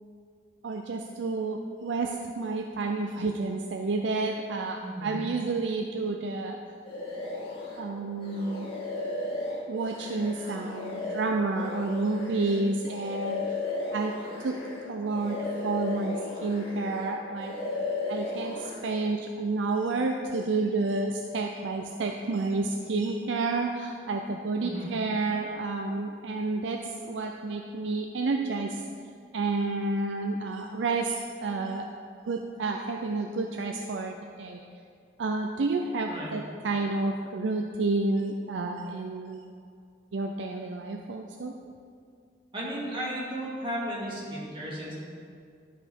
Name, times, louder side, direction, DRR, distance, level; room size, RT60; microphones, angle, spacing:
voice 1, 0.6-6.6 7.8-8.7 9.7-13.6 13.9-14.2 14.4-14.6 14.9-17.6 18.1-28.8 29.3-31.9 32.3-34.6 35.2-39.4 40.1-41.5, right 3 dB, 80° right, 2 dB, 0.5 m, -30 dB
voice 2, 4.8-5.2 24.6-24.9 36.1-36.3 42.5-44.9, equal, 30° right, -6 dB, 2.2 m, -34 dB
sound 1, 6.8-7.8 8.2-14.8 15.1-17.1 17.3-18.8, left 2 dB, 30° left, 2.4 m, -35 dB
11.0 x 5.5 x 4.5 m, 2.3 s
head